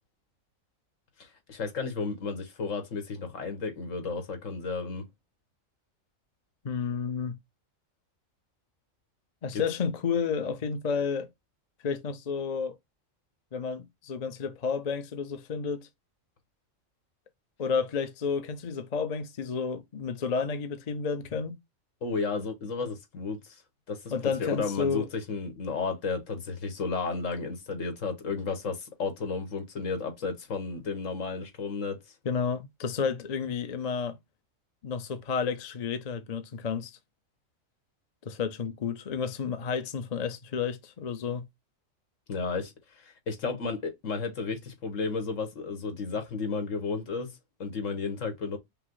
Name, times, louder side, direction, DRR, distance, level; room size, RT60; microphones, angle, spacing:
voice 1, 1.2-5.1 9.5-9.6 22.0-23.6 23.9-32.0 42.3-47.3 47.6-48.6, left 4 dB, 70° left, 1.6 m, -33 dB
voice 2, 6.6-7.4 9.4-11.3 11.8-12.7 13.5-15.9 17.6-21.5 24.1-25.1 32.2-34.2 34.8-36.9 38.2-41.4, left 6 dB, 45° left, 0.6 m, -31 dB
5.7 x 2.0 x 3.8 m
omnidirectional pair, 1.4 m